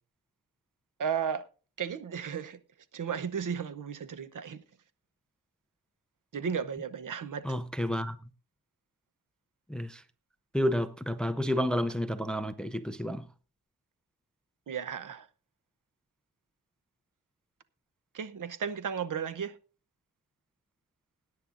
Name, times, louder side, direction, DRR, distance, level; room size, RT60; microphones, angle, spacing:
voice 1, 1.0-1.5 1.8-2.6 2.9-4.6 6.3-7.6 14.7-15.3 18.1-19.6, right 7 dB, 50° right, 0.9 m, -34 dB
voice 2, 7.4-8.2 9.7-10.0 10.5-13.2, equal, ahead, 0.5 m, -30 dB
21.0 x 9.7 x 2.5 m
wide cardioid pair, 125°, 42 cm